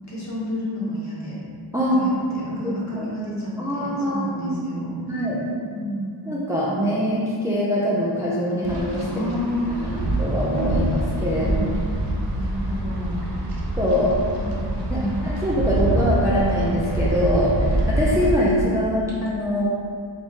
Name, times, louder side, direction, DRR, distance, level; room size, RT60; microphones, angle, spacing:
voice 1, 0.1-1.4 1.9-5.0 5.6-6.3 9.0-9.8 11.4-11.7 12.3-13.2 14.3-15.3, left 1 dB, 35° left, -7 dB, 1.0 m, -30 dB
voice 2, 1.7-2.4 2.6-3.1 3.6-4.8 5.1-5.4 6.3-9.0 9.7-11.6 13.8-14.1 14.9-19.7, equal, 5° right, -7 dB, 0.4 m, -23 dB
Wind, 8.6-18.4, right 1 dB, 50° right, 0.7 m, -26 dB
3.6 x 3.0 x 4.1 m, 2.2 s
wide cardioid pair, 150°, 46 cm